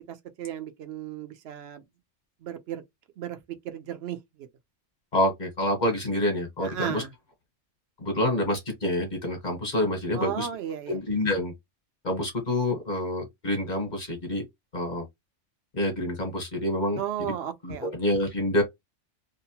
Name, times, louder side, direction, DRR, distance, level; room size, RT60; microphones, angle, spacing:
voice 1, 0.1-1.8 2.4-2.8 3.2-3.4 3.6-4.2 6.6-7.1 10.1-11.0 17.0-17.9, right 9 dB, 65° right, 0.8 m, -34 dB
voice 2, 5.1-7.0 8.0-10.5 10.9-11.5 12.0-14.4 14.7-15.0 15.7-17.0 17.6-18.6, left 1 dB, 40° left, 1.1 m, -27 dB
2.8 x 2.1 x 2.7 m
omnidirectional pair, 1.2 m